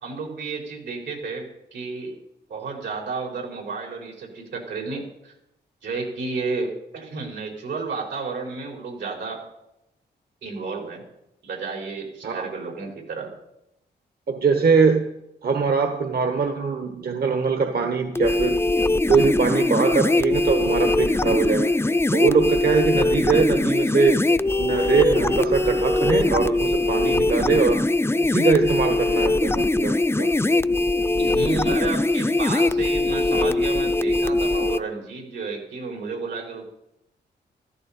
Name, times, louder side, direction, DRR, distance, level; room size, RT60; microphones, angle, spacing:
voice 1, 0.0-2.2 2.5-5.3 5.8-9.4 10.4-11.0 11.4-13.3 31.2-36.6, right 4 dB, 85° right, 0 dB, 4.7 m, -32 dB
voice 2, 14.3-15.1 15.4-18.6 19.1-21.7 22.1-24.2 24.6-27.8 28.2-30.3, right 5 dB, 60° right, 5 dB, 1.3 m, -22 dB
sound 1, 18.2-34.8, left 2 dB, 15° left, 0.6 m, -21 dB
14.5 x 14.0 x 4.4 m, 0.84 s
cardioid pair, 75°, 18 cm